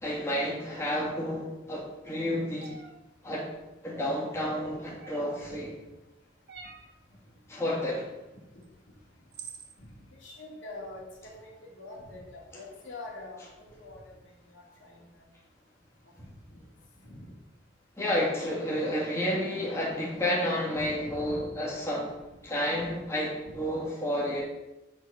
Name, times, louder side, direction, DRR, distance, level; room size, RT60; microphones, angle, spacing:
voice 1, 0.0-2.8 3.2-3.5 3.8-5.7 7.5-8.1 18.0-22.2 22.4-24.4, equal, 15° left, -5 dB, 2.0 m, -30 dB
sound 1, 2.6-2.9 5.0-5.4 6.5-6.9 8.6-8.7 9.3-9.7, right 6 dB, 55° right, 1.0 m, -45 dB
voice 2, 10.2-14.2 14.5-15.0 16.2-16.3 17.0-17.3 21.0-21.5, left 2 dB, 80° left, -2 dB, 2.2 m, -45 dB
8.1 x 4.0 x 6.9 m, 1.0 s
head